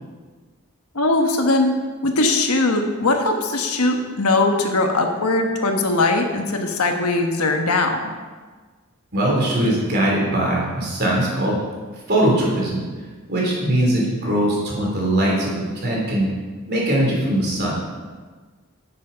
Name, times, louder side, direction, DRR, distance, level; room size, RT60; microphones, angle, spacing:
voice 1, 0.9-1.7 2.0-8.0, left 2 dB, 90° left, 4 dB, 1.2 m, -20 dB
voice 2, 9.1-11.6 12.1-12.8 13.3-16.3 16.7-17.7, right 1 dB, 50° right, -3 dB, 3.0 m, -21 dB
9.1 x 7.1 x 5.5 m, 1.4 s
head